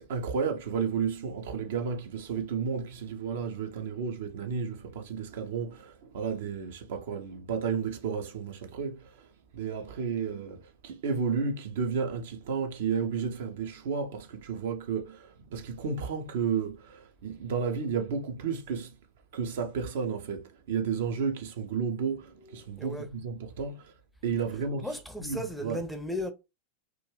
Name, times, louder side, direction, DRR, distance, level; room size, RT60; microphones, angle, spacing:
voice 1, 0.0-19.0 19.3-23.9 24.2-25.9, right 6 dB, 55° right, 0.5 m, -32 dB
voice 2, 24.8-26.3, left 1 dB, ahead, 0.5 m, -35 dB
2.3 x 2.1 x 3.1 m
figure-of-eight pair, 90°, 0 cm